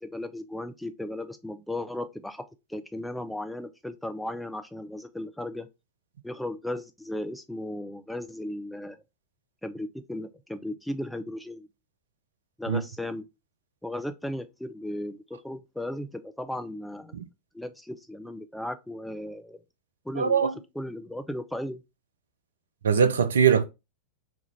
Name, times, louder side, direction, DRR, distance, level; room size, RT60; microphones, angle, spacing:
voice 1, 0.0-2.4 2.7-5.7 6.2-9.0 9.6-11.7 12.6-13.2 13.8-17.2 17.5-19.6 20.0-20.5 20.8-21.8, left 1 dB, 5° left, 0.5 m, -36 dB
voice 2, 20.2-20.5 22.8-23.6, right 7 dB, 65° right, 0.4 m, -21 dB
3.5 x 2.4 x 3.9 m
figure-of-eight pair, 90°, 0 cm